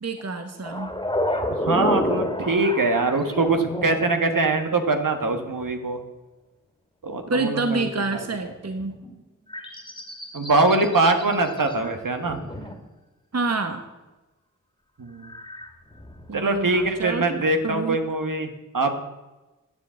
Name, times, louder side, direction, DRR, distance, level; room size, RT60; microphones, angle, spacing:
voice 1, 0.0-0.9 7.3-8.9 13.3-13.8 16.3-18.0, right 3 dB, 50° right, 7 dB, 1.1 m, -28 dB
sound 1, 0.6-4.8 8.8-9.1 9.5-11.9 12.2-12.7 15.2-17.1 17.4-17.5, left 1 dB, 15° left, 2.2 m, -30 dB
voice 2, 1.5-6.0 7.0-8.2 10.3-12.5 15.0-15.3 16.3-19.0, right 2 dB, 75° right, 6 dB, 1.4 m, -23 dB
11.5 x 7.6 x 8.0 m, 1.1 s
wide cardioid pair, 60°, 33 cm